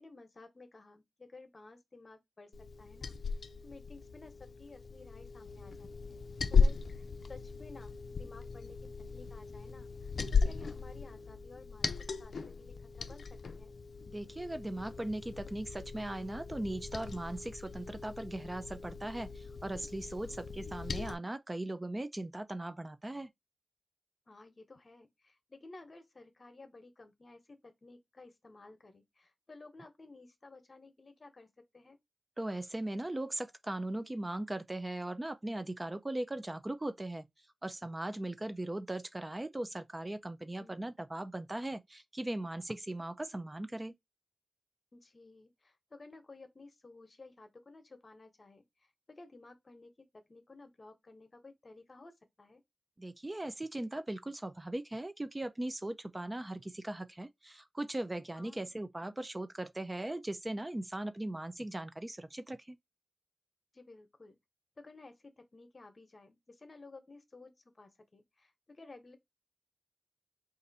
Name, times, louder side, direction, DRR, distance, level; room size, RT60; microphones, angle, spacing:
voice 1, 0.0-2.5 2.8-3.2 3.6-11.9 12.2-13.2 13.5-13.7 20.1-20.4 24.3-31.5 31.7-32.0 40.6-40.8 44.9-48.6 49.1-52.6 58.3-58.8 63.7-64.4 64.8-69.2, left 3 dB, 45° left, 1.0 m, -55 dB
Liquid, 2.5-21.1, left 5 dB, 80° left, 0.4 m, -36 dB
voice 2, 14.1-23.3 32.4-37.3 37.6-43.9 53.0-62.8, right 1 dB, 20° right, 0.5 m, -39 dB
4.1 x 2.5 x 4.0 m
wide cardioid pair, 90°, 0 cm